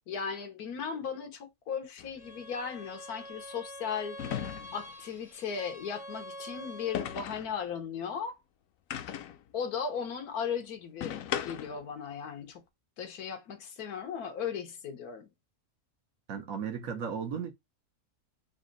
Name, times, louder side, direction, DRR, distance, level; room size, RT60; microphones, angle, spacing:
voice 1, 0.1-4.2 4.7-8.4 9.5-12.6 13.0-15.3, left 6 dB, 90° left, 1.4 m, -37 dB
sound 1, 2.0-2.1 4.2-4.9 6.9-7.5 8.9-9.4 11.0-11.8, left 10 dB, 70° left, 1.0 m, -36 dB
Bowed string instrument, 2.2-7.3, equal, 35° left, 0.7 m, -46 dB
voice 2, 16.3-17.5, right 7 dB, 70° right, 1.3 m, -35 dB
4.1 x 2.6 x 3.8 m
omnidirectional pair, 1.5 m